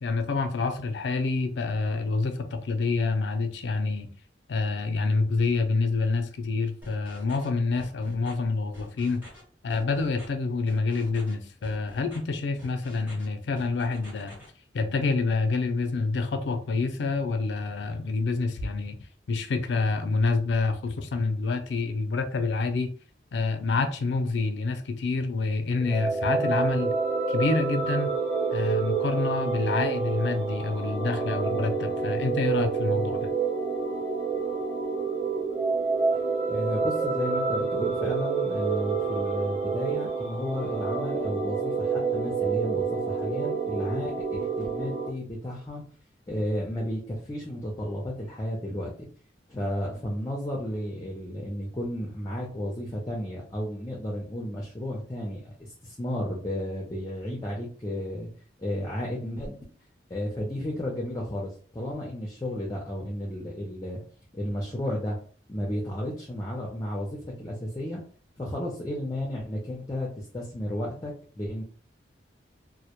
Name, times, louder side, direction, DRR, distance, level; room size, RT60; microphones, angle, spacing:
voice 1, 0.0-4.1 4.5-9.3 9.6-14.3 14.7-19.0 19.3-22.9 23.3-26.9 27.3-28.1 28.5-33.3, left 3 dB, 85° left, 0.4 m, -27 dB
sound 1, 6.8-7.5 7.8-8.3 8.7-9.4 9.7-10.3 10.7-11.3 11.6-12.2 12.6-13.3 13.6-14.5, left 1 dB, 10° right, 0.9 m, -48 dB
sound 2, 25.8-45.1, right 4 dB, 40° right, 0.4 m, -28 dB
voice 2, 36.5-45.8 46.3-48.9 49.5-58.3 58.6-59.6 60.1-64.0 64.3-65.2 65.5-68.0 68.4-71.6, equal, 20° left, 0.4 m, -33 dB
2.1 x 2.0 x 2.9 m
head